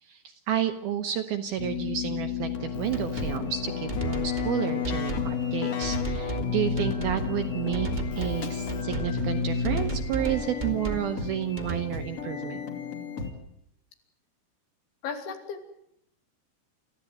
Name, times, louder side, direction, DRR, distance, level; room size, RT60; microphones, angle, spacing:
voice 1, 0.0-12.7, right 11 dB, 70° right, 7 dB, 2.5 m, -31 dB
Keyboard (musical), 1.6-10.3, left 6 dB, 55° left, 2.4 m, -31 dB
sound 1, 2.9-3.4 3.9-4.5 4.8-5.3 5.8-6.5 6.8-7.2 7.7-8.4 8.7-9.1 9.6-11.1 11.6-11.8, right 3 dB, 20° right, 1.4 m, -34 dB
sound 2, 3.2-13.3, left 5 dB, 35° left, 3.1 m, -37 dB
voice 2, 15.0-15.7, left 6 dB, 75° left, 4 dB, 5.1 m, -35 dB
28.5 x 14.5 x 9.1 m, 0.76 s
omnidirectional pair, 5.5 m